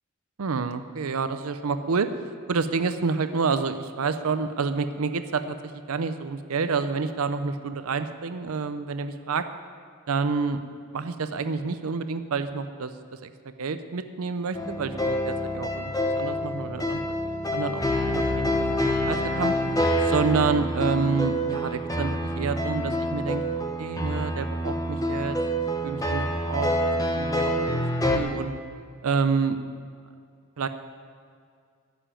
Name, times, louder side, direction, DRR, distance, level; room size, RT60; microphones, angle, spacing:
voice 1, 0.4-2.1 2.5-9.5 10.1-10.6 10.9-13.3 13.6-17.0 17.5-17.8 18.1-19.5 20.0-25.4 25.8-26.7 27.2-27.9 28.1-28.5 29.0-29.6 30.6-30.7, right 5 dB, 80° right, 10 dB, 0.6 m, -28 dB
sound 1, 14.5-28.2, equal, 15° left, 1.0 m, -27 dB
13.5 x 7.0 x 8.9 m, 2.2 s
head